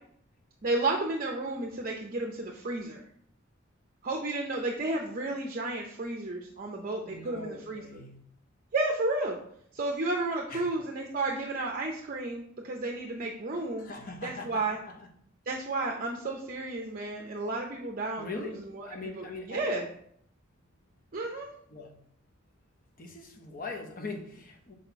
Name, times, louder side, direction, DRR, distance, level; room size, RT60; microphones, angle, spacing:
voice 1, 0.6-3.0 4.0-7.8 8.7-9.4 9.7-13.9 14.2-14.8 15.5-19.9 21.1-21.5, right 2 dB, 40° right, 0.6 m, -32 dB
voice 2, 7.0-8.3 10.5-10.7 13.8-15.1 18.2-19.7 21.2-21.4 21.7-22.0 23.0-24.7, left 3 dB, 40° left, 0.8 m, -41 dB
4.8 x 4.2 x 5.7 m
head